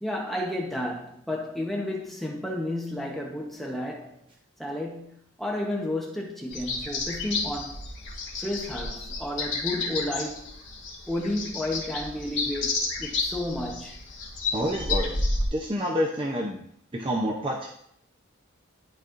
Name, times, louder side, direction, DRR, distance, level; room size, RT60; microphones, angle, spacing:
voice 1, 0.0-4.2 4.6-7.8 8.4-10.5 11.1-14.0, left 1 dB, ahead, -2 dB, 1.0 m, -32 dB
sound 1, 6.5-15.5, left 3 dB, 55° left, 2.4 m, -31 dB
voice 2, 14.5-15.1 15.5-16.6 16.9-17.7, equal, 25° right, -2 dB, 0.7 m, -28 dB
12.0 x 4.1 x 2.6 m, 0.68 s
head